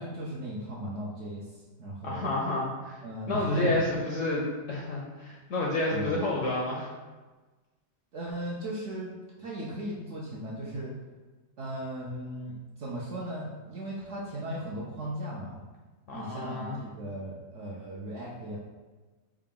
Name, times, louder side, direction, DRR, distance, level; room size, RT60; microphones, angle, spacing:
voice 1, 0.0-1.4 1.8-2.3 3.0-3.8 5.9-6.1 8.1-9.1 9.4-10.9 11.6-15.6 16.1-18.6, right 1 dB, 65° right, -5 dB, 0.7 m, -36 dB
voice 2, 2.0-3.0 3.3-6.9 16.1-16.8, left 2 dB, 70° left, -3 dB, 0.7 m, -30 dB
4.7 x 2.2 x 3.6 m, 1.3 s
omnidirectional pair, 1.8 m